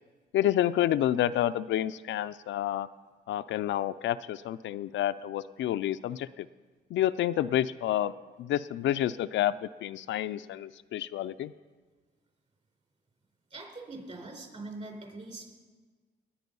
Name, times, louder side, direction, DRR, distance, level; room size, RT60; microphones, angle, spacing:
voice 1, 0.3-2.9 3.3-6.5 6.9-8.1 8.4-11.5, left 12 dB, 70° left, 11 dB, 0.4 m, -29 dB
voice 2, 13.5-15.5, right 2 dB, 35° right, 1 dB, 4.4 m, -42 dB
20.0 x 8.8 x 5.4 m, 1.4 s
cardioid pair, 90°, 20 cm